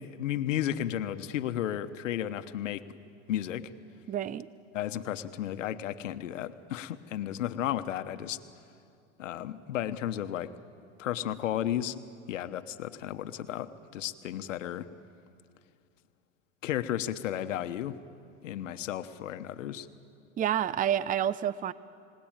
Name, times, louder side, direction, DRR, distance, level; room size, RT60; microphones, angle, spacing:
voice 1, 0.0-2.8 3.3-3.7 4.7-8.4 9.2-10.5 11.0-12.0 12.3-14.9 16.6-18.0 18.4-19.9, left 11 dB, 85° left, 10 dB, 1.2 m, -33 dB
voice 2, 4.1-4.5 20.4-21.7, right 10 dB, 20° right, 18 dB, 0.6 m, -28 dB
29.5 x 18.5 x 8.9 m, 2.4 s
hypercardioid pair, 105°, 37 cm